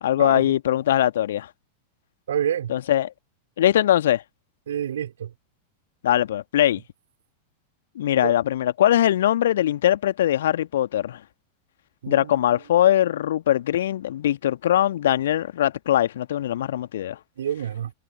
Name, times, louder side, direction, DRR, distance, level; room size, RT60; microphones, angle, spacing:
voice 1, 0.0-1.5 2.7-3.1 3.6-4.2 6.0-6.8 8.0-11.2 12.1-17.2, left 12 dB, 60° left, 1.9 m, -21 dB
voice 2, 2.3-2.7 4.7-5.3 8.2-8.3 12.0-12.5 17.4-17.9, right 10 dB, 65° right, 4.1 m, -28 dB
figure-of-eight pair, 90°, 0 cm